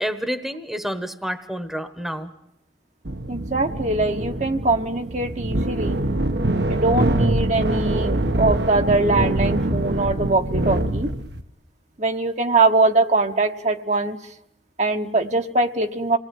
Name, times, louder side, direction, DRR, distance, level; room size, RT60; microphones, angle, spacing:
voice 1, 0.0-2.3, equal, ahead, 10 dB, 1.2 m, -29 dB
sound 1, 3.0-11.4, right 1 dB, 65° right, 1.2 m, -24 dB
voice 2, 3.3-6.0 6.7-11.1 12.0-14.2 14.8-16.2, right 2 dB, 40° right, 5 dB, 1.2 m, -22 dB
27.5 x 19.5 x 9.3 m, 0.79 s
head